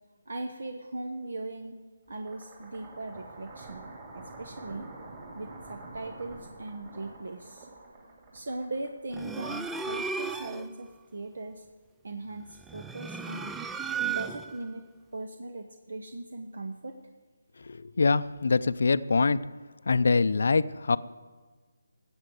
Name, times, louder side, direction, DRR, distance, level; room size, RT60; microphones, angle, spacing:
voice 1, 0.3-1.8 2.1-4.9 5.3-7.7 8.3-11.6 12.0-13.5 14.0-14.8 15.1-17.0, right 2 dB, 70° right, 6 dB, 1.0 m, -39 dB
sound 1, 2.1-10.3, right 2 dB, 25° right, 3.0 m, -47 dB
sound 2, 9.1-10.7 12.6-14.6, right 5 dB, 5° right, 0.3 m, -34 dB
voice 2, 17.7-19.4 19.9-21.0, left 4 dB, 65° left, 14 dB, 0.5 m, -24 dB
14.0 x 8.2 x 7.9 m, 1.4 s
hypercardioid pair, 165°, 0 cm